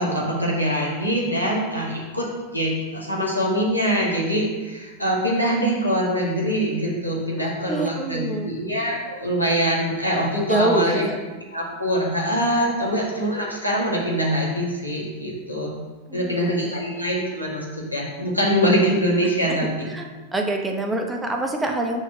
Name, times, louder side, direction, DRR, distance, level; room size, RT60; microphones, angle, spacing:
voice 1, 0.0-11.0 11.5-15.8 16.1-19.9, equal, 90° left, -5 dB, 1.9 m, -23 dB
voice 2, 7.4-8.5 10.5-11.2 12.7-12.9 16.1-16.8 19.5-22.0, right 2 dB, 10° right, 3 dB, 0.9 m, -26 dB
6.2 x 4.5 x 6.5 m, 1.3 s
figure-of-eight pair, 90°, 0 cm